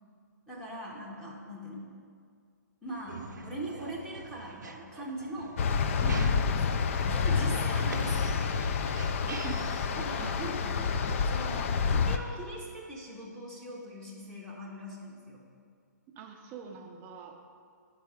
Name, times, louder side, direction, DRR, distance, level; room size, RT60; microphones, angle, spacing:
voice 1, 0.5-1.9 2.8-5.6 5.9-8.7 9.9-15.4, right 1 dB, 5° left, -5 dB, 0.9 m, -41 dB
sound 1, 2.9-9.8, right 5 dB, 80° right, 0.6 m, -46 dB
sound 2, 5.6-12.2, left 5 dB, 45° left, 0.4 m, -28 dB
voice 2, 6.0-6.5 9.2-10.4 16.2-17.4, right 6 dB, 20° right, 3 dB, 0.5 m, -43 dB
9.2 x 4.7 x 4.9 m, 2.2 s
hypercardioid pair, 145°, 10 cm